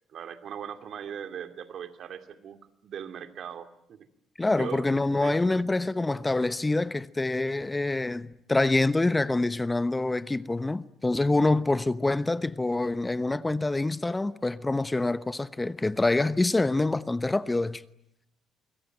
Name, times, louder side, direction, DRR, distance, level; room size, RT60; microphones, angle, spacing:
voice 1, 0.1-4.1 4.5-4.8 5.2-5.7, right 8 dB, 60° right, 2.5 m, -40 dB
voice 2, 4.4-17.8, left 2 dB, 20° left, 1.0 m, -26 dB
25.5 x 23.5 x 9.2 m
hypercardioid pair, 55°, 0 cm